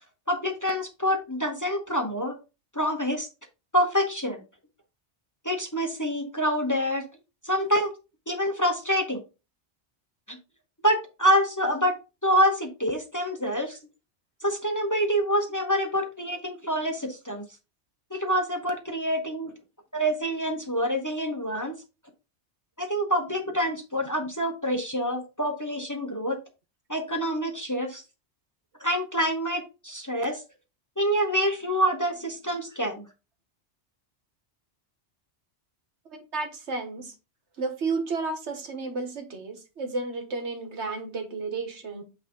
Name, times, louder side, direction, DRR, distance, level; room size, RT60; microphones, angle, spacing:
voice 1, 0.3-2.4 2.7-3.3 3.7-4.4 5.4-7.0 7.4-7.9 8.3-9.2 10.3-10.4 10.8-12.0 12.2-13.8 14.4-17.4 18.1-19.5 19.9-21.8 22.8-26.4 26.9-28.0 28.8-30.4 31.0-33.0, equal, 20° left, 0.9 m, -26 dB
voice 2, 36.3-37.1 37.6-42.0, right 3 dB, 75° right, 1.6 m, -32 dB
8.2 x 3.5 x 3.8 m
omnidirectional pair, 1.2 m